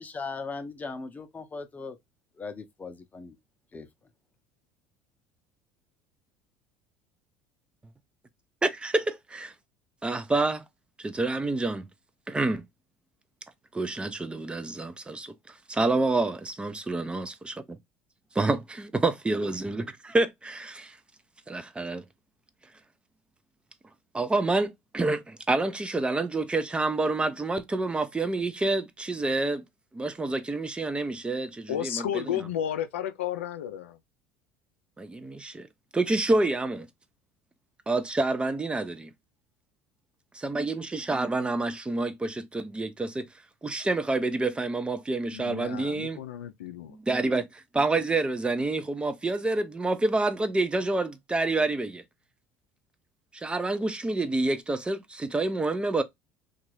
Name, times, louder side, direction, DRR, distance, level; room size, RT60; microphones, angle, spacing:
voice 1, 0.0-2.0 2.4-3.4 3.7-3.9, left 4 dB, 25° left, 0.6 m, -38 dB
voice 2, 8.6-9.0 9.3-9.5 10.0-10.6 11.0-11.9 12.3-12.6 13.7-17.8 18.3-21.0 21.5-22.0 24.1-29.6 29.9-32.2 35.0-35.7 35.9-36.9 37.9-39.1 40.3-43.3 43.6-46.2 46.9-52.0 53.3-56.0, right 2 dB, 15° right, 0.5 m, -28 dB
voice 3, 31.7-34.0 45.3-47.0, left 10 dB, 85° left, 0.4 m, -32 dB
2.9 x 2.4 x 2.9 m
hypercardioid pair, 75°, 7 cm